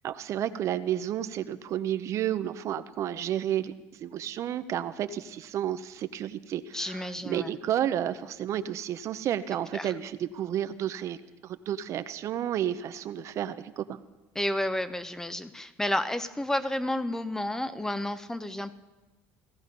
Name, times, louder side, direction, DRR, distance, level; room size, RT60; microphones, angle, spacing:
voice 1, 0.0-11.2 11.4-14.0, right 10 dB, 50° right, 12 dB, 0.7 m, -31 dB
voice 2, 6.7-7.5 9.7-9.9 14.3-18.7, left 1 dB, 10° left, 12 dB, 0.8 m, -31 dB
17.5 x 13.0 x 5.3 m, 1.1 s
supercardioid pair, 105°, 6 cm